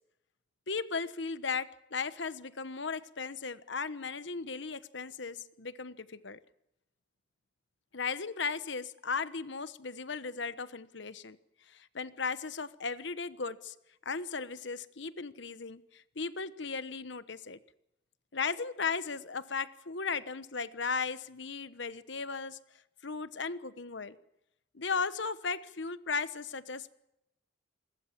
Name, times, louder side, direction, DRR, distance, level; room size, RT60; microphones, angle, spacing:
voice 1, 0.7-6.4 7.9-11.4 11.7-13.7 14.0-17.6 18.3-22.6 23.0-24.2 24.7-26.9, left 5 dB, 65° left, 14 dB, 1.1 m, -36 dB
27.0 x 21.5 x 7.4 m, 0.84 s
head